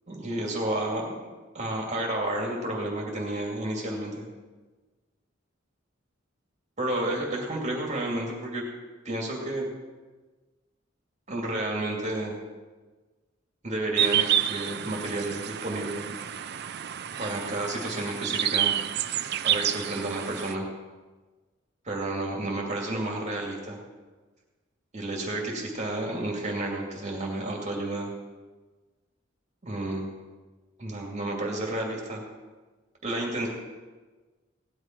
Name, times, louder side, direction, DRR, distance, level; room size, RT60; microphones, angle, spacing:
voice 1, 0.1-4.2 6.8-8.6 9.0-9.7 11.3-12.4 13.6-16.1 17.2-18.7 19.4-20.6 21.8-23.8 24.9-28.1 29.6-30.1 30.8-32.2 33.0-33.5, right 1 dB, 35° right, -1 dB, 2.5 m, -31 dB
sound 1, 14.0-20.5, right 10 dB, 55° right, 0.6 m, -29 dB
17.5 x 12.0 x 4.6 m, 1.3 s
head